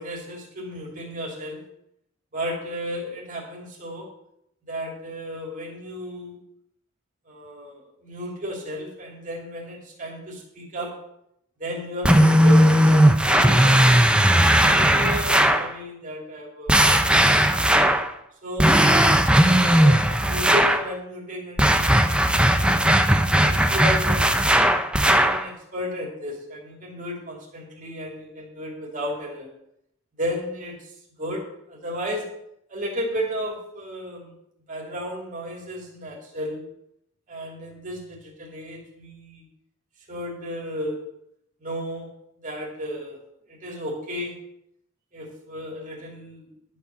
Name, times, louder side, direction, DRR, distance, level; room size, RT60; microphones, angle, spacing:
voice 1, 0.0-1.6 2.3-4.1 4.7-6.4 7.3-10.9 11.6-14.2 14.6-16.8 18.4-18.9 19.5-22.9 23.4-24.6 25.1-29.5 30.2-30.9 31.2-32.2 32.7-34.3 34.7-36.7 37.3-39.4 40.1-41.0 41.6-42.1 42.4-43.2 43.5-44.4 45.1-46.5, equal, 40° right, -1 dB, 2.6 m, -33 dB
sound 1, 12.0-15.7 16.7-18.1 18.6-20.9 21.6-25.4, right 1 dB, 5° right, 0.6 m, -17 dB
11.5 x 5.4 x 7.9 m, 0.76 s
head